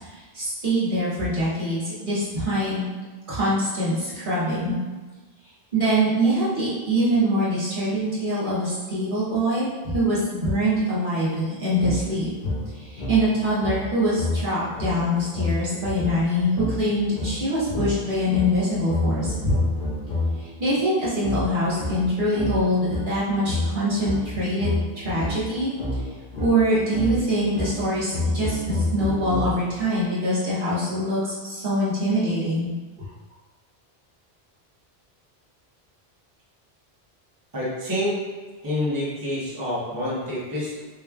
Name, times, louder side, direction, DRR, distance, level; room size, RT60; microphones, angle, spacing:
voice 1, 0.0-2.8 3.3-4.8 5.7-12.3 12.7-19.5 20.4-25.7 26.4-32.7, equal, 55° right, -9 dB, 1.3 m, -24 dB
sound 1, 11.8-20.5 21.2-29.8, left 1 dB, 60° left, 0.9 m, -29 dB
voice 2, 37.5-38.2 38.6-40.8, left 1 dB, 20° right, -9 dB, 0.9 m, -27 dB
3.5 x 3.1 x 2.3 m, 1.3 s
omnidirectional pair, 1.0 m